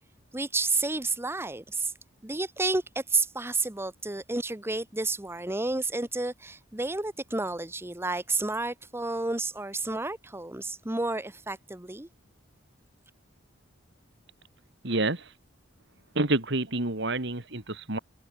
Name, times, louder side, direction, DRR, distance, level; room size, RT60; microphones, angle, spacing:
voice 1, 0.3-1.9 2.2-12.1, right 3 dB, 10° right, 1.0 m, -30 dB
voice 2, 14.8-15.3 16.1-18.0, right 2 dB, 60° right, 2.9 m, -28 dB
head